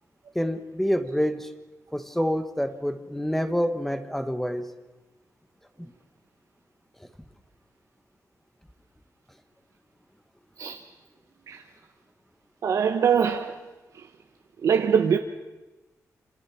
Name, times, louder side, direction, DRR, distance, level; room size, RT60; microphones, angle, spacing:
voice 1, 0.3-1.5 1.9-4.7 5.8-5.9, equal, 5° left, 1.2 m, -27 dB
voice 2, 12.6-13.5 14.6-15.2, right 7 dB, 65° right, 1.1 m, -22 dB
27.5 x 27.0 x 6.0 m
wide cardioid pair, 160°, 6 cm